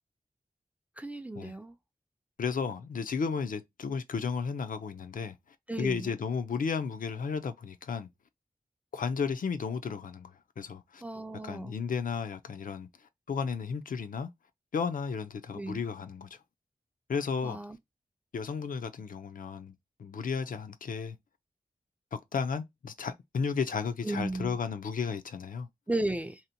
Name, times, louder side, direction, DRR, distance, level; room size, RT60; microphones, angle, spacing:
voice 1, 1.0-1.7 5.7-6.1 11.0-11.7 15.5-15.8 17.4-17.8 24.0-24.6 25.9-26.4, right 2 dB, 10° right, 0.3 m, -34 dB
voice 2, 2.4-5.4 5.8-8.1 8.9-11.0 11.4-12.9 13.3-14.3 14.7-16.3 17.1-17.6 18.3-19.7 20.0-21.2 22.1-25.7, left 5 dB, 75° left, 0.4 m, -33 dB
2.7 x 2.1 x 2.6 m
wide cardioid pair, 85°, 14 cm